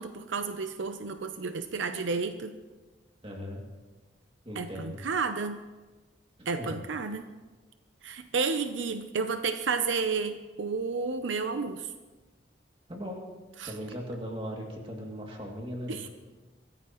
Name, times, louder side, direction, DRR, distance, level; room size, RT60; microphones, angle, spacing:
voice 1, 0.0-2.5 4.6-5.6 6.5-7.3 8.0-11.9 13.6-13.7 15.9-16.1, right 4 dB, 80° right, 8 dB, 0.7 m, -31 dB
voice 2, 3.2-3.6 4.4-5.1 6.4-6.8 12.9-13.2 13.6-16.1, equal, 30° right, 0 dB, 2.5 m, -38 dB
23.5 x 15.0 x 3.1 m, 1.3 s
head